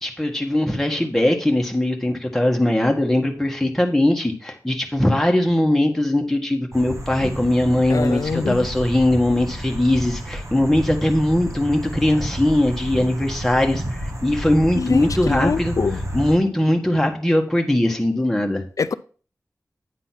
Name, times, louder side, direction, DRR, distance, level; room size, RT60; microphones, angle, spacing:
voice 1, 0.0-15.7 16.1-18.6, left 1 dB, 5° left, 1.4 m, -20 dB
sound 1, 6.7-16.4, equal, 55° right, 1.4 m, -30 dB
voice 2, 7.9-8.7 14.8-16.0 18.8-18.9, left 5 dB, 70° left, 0.4 m, -24 dB
9.2 x 4.0 x 5.8 m
wide cardioid pair, 80°, 6 cm